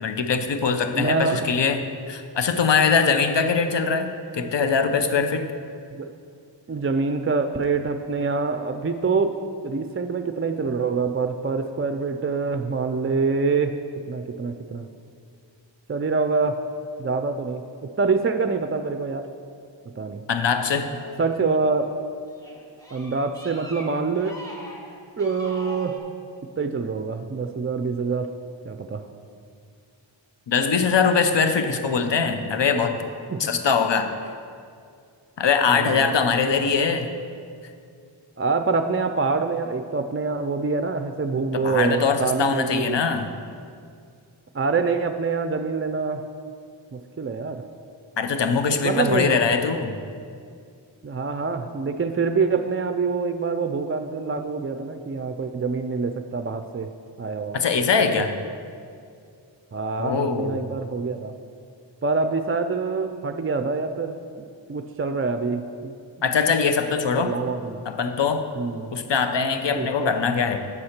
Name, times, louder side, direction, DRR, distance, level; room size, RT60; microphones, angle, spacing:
voice 1, 0.0-1.8 2.1-4.1 4.3-5.5 20.3-20.9 30.5-33.0 33.4-34.1 35.4-37.1 41.5-43.3 48.2-50.0 57.5-58.3 60.0-60.6 66.2-67.4 67.9-68.5 68.9-70.6, left 5 dB, 70° left, 8 dB, 0.7 m, -22 dB
voice 2, 0.9-1.5 6.0-6.1 6.7-9.4 9.6-13.7 14.1-14.9 15.9-16.6 17.0-19.3 20.0-20.2 21.2-21.9 22.9-24.4 25.2-26.0 26.6-28.3 28.6-29.1 33.3-33.5 35.7-36.1 38.4-43.0 44.5-46.2 46.9-47.6 48.8-49.4 51.0-56.9 57.2-57.6 59.7-61.3 62.0-65.9 67.1-67.8 68.6-68.9 69.8-70.1, right 4 dB, 30° right, 8 dB, 0.4 m, -25 dB
sound 1, 20.4-21.8 22.3-26.0, equal, 10° left, 1.3 m, -43 dB
8.6 x 4.3 x 6.4 m, 2.3 s
wide cardioid pair, 45°, 45 cm